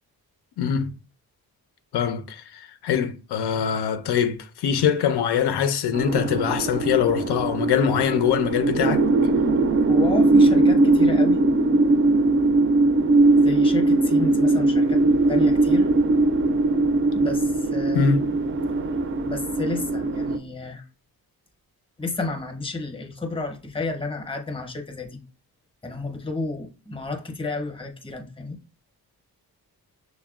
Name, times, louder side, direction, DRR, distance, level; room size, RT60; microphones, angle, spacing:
voice 1, 0.6-0.9 1.9-9.0 17.9-18.2, left 8 dB, 90° left, 0.5 m, -23 dB
sound 1, 5.9-20.4, right 2 dB, 35° right, 0.4 m, -20 dB
voice 2, 9.8-11.4 13.4-15.0 15.3-15.9 17.1-18.1 19.3-20.8 22.0-25.2 25.8-28.6, left 2 dB, 15° left, 0.7 m, -31 dB
6.3 x 2.1 x 2.3 m
wide cardioid pair, 110°, 38 cm